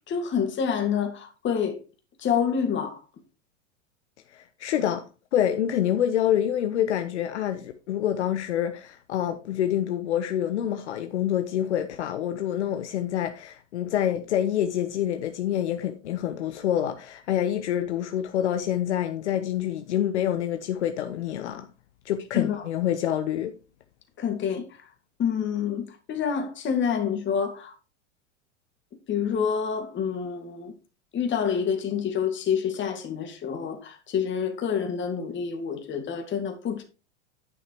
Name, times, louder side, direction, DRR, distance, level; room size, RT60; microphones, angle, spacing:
voice 1, 0.1-1.8 2.2-3.0 22.3-22.6 24.2-24.7 25.2-27.7 29.1-30.7 31.1-36.8, left 7 dB, 30° left, 2.7 m, -27 dB
voice 2, 4.3-5.0 5.3-21.7 22.0-23.5, left 10 dB, 70° left, 1.0 m, -27 dB
10.5 x 5.9 x 4.6 m
hypercardioid pair, 95°, 35 cm